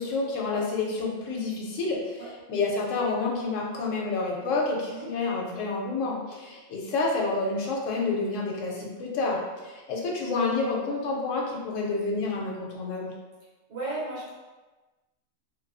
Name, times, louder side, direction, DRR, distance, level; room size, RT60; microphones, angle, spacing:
voice 1, 0.0-13.1, left 3 dB, 75° left, -2 dB, 0.9 m, -29 dB
voice 2, 13.7-14.3, right 2 dB, 70° right, -7 dB, 1.2 m, -35 dB
2.5 x 2.5 x 2.3 m, 1.2 s
omnidirectional pair, 1.4 m